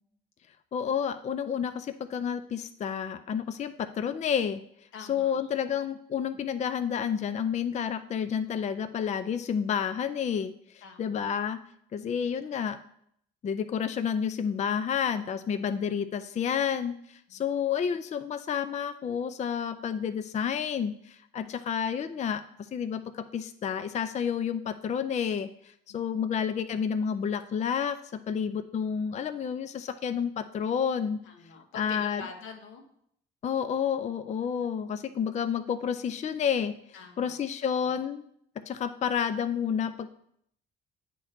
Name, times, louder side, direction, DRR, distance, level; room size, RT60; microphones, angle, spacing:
voice 1, 0.7-4.6 5.1-11.6 11.9-12.8 13.4-22.4 22.7-28.0 28.3-31.2 31.7-32.2 33.4-36.7 37.2-38.2 38.7-40.1, left 7 dB, 35° left, 10 dB, 0.4 m, -30 dB
voice 2, 4.9-5.9 10.8-11.3 17.3-17.5 21.4-21.6 25.9-26.2 31.2-32.8 36.9-38.0, left 5 dB, 90° left, 3 dB, 1.1 m, -47 dB
8.6 x 3.1 x 4.9 m, 0.70 s
cardioid pair, 90°, 20 cm